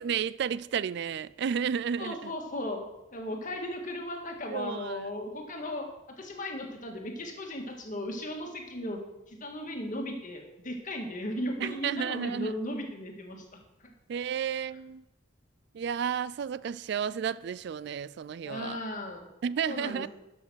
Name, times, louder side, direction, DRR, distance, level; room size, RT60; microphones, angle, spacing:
voice 1, 0.0-2.3 4.5-5.0 11.6-12.5 14.1-15.0 15.7-18.8 19.4-20.1, right 7 dB, 65° right, 0.3 m, -32 dB
voice 2, 2.0-2.8 3.1-5.9 6.2-9.0 9.3-13.4 13.8-13.9 18.4-19.3 19.6-20.1, left 1 dB, 45° left, 1.9 m, -36 dB
12.0 x 6.3 x 6.3 m
head